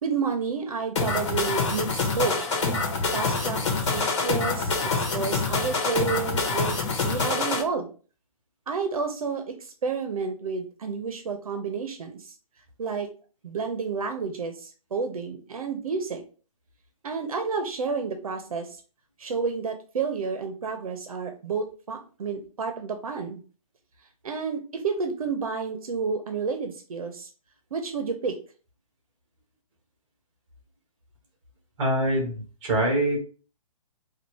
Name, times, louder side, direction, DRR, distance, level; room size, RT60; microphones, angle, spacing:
voice 1, 0.0-2.4 3.1-7.9 8.7-12.3 12.8-13.1 13.4-16.2 17.0-18.8 19.2-23.4 24.2-27.3 27.7-28.4, right 5 dB, 70° right, 6 dB, 0.9 m, -30 dB
sound 1, 1.0-7.6, left 3 dB, 50° left, 1.1 m, -26 dB
voice 2, 31.8-33.2, right 1 dB, 20° right, 0 dB, 1.8 m, -24 dB
4.3 x 2.5 x 4.5 m, 0.38 s
hypercardioid pair, 165°, 19 cm